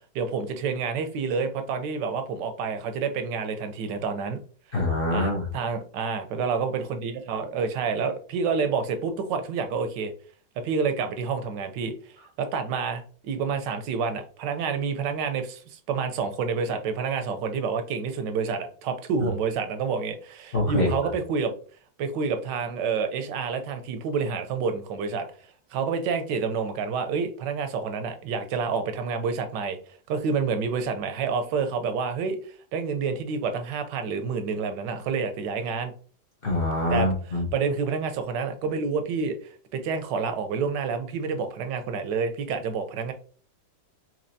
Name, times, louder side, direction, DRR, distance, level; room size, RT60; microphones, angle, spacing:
voice 1, 0.1-4.4 5.1-10.1 10.6-11.9 12.4-21.5 22.0-25.3 25.7-29.8 30.1-32.4 32.7-35.9 36.9-37.1 37.5-39.4 39.7-43.1, right 5 dB, 80° right, 1.3 m, -28 dB
voice 2, 4.7-5.5 19.2-19.3 20.5-20.9 36.4-37.5, left 2 dB, 45° left, 0.8 m, -25 dB
4.3 x 3.0 x 2.6 m
omnidirectional pair, 1.9 m